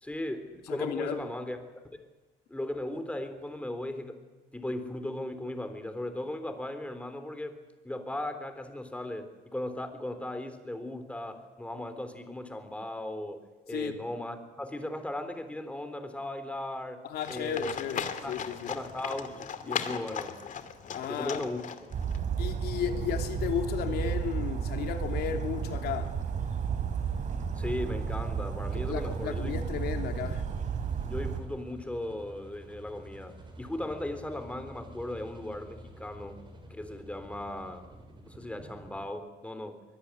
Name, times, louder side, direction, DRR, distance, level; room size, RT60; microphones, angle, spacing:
voice 1, 0.0-1.6 1.9-2.1 2.5-4.2 4.5-7.6 7.8-17.7 18.2-18.4 18.7-20.4 21.1-21.6 27.6-29.5 31.1-37.9 38.3-39.8, left 1 dB, 5° left, 3.7 m, -37 dB
voice 2, 0.7-1.2 13.7-14.0 17.0-18.7 20.9-21.4 22.4-26.2 28.9-30.4, left 9 dB, 70° left, 3.0 m, -34 dB
Livestock farm animals working animals, 17.2-22.2, left 7 dB, 50° left, 2.5 m, -37 dB
Bird vocalization bird call bird song, 21.9-31.4, right 6 dB, 45° right, 3.9 m, -32 dB
sound 1, 24.2-39.1, right 1 dB, 30° right, 6.1 m, -51 dB
24.0 x 21.5 x 9.8 m
cardioid pair, 110°, 17 cm